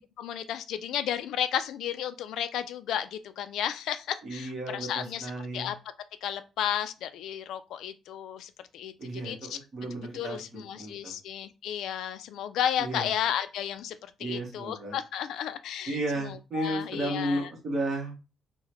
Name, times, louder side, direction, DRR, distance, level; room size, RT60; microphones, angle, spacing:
voice 1, 0.2-5.8 6.2-9.6 10.0-13.9 14.2-17.5, left 10 dB, 75° left, 0.3 m, -33 dB
voice 2, 4.2-5.7 9.0-11.1 12.8-13.1 14.2-15.0 15.9-18.1, right 1 dB, 40° right, 1.1 m, -33 dB
3.7 x 2.2 x 2.9 m
cardioid pair, 170°, 0 cm